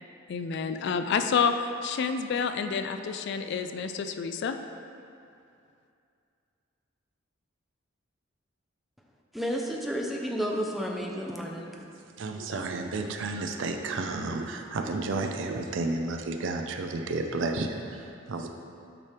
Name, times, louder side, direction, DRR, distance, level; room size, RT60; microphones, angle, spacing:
voice 1, 0.3-4.6, left 6 dB, 60° left, 8 dB, 0.3 m, -29 dB
voice 2, 9.3-11.7, equal, ahead, -1 dB, 0.5 m, -31 dB
voice 3, 11.8-18.5, right 3 dB, 65° right, 4 dB, 0.5 m, -32 dB
8.6 x 3.3 x 4.4 m, 2.5 s
head